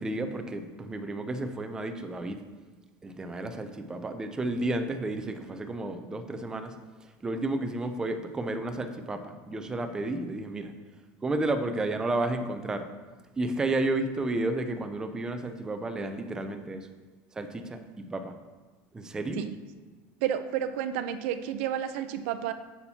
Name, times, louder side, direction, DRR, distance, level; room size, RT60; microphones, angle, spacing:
voice 1, 0.0-2.4 3.0-6.7 7.2-10.7 11.2-12.9 13.4-16.9 17.3-18.3 18.9-19.4, right 2 dB, 10° right, 7 dB, 0.4 m, -32 dB
voice 2, 20.2-22.5, right 10 dB, 85° right, 10 dB, 0.5 m, -31 dB
8.6 x 7.0 x 2.8 m, 1.3 s
cardioid pair, 170°, 7 cm